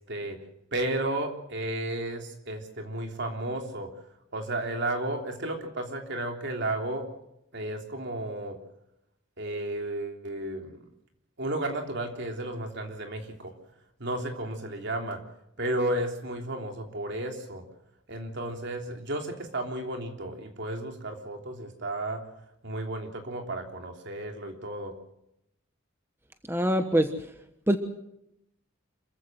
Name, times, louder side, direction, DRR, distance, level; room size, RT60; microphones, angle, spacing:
voice 1, 0.1-0.4 0.7-3.9 4.3-7.1 7.5-8.6 9.4-10.8 11.4-13.5 14.0-15.2 15.6-17.6 18.1-22.2 22.6-24.9, right 1 dB, 60° right, 4 dB, 3.4 m, -33 dB
voice 2, 26.5-27.1 27.7-27.8, equal, 10° right, 7 dB, 1.2 m, -23 dB
26.5 x 15.5 x 7.9 m, 0.81 s
head